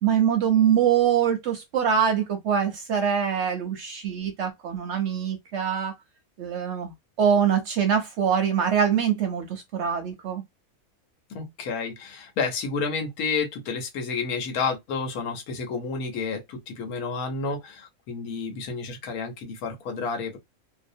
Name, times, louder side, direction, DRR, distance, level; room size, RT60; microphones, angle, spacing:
voice 1, 0.0-5.9 6.4-10.4, right 8 dB, 65° right, 0.8 m, -24 dB
voice 2, 11.3-20.4, left 4 dB, 80° left, 1.3 m, -30 dB
2.8 x 2.1 x 2.6 m
omnidirectional pair, 1.5 m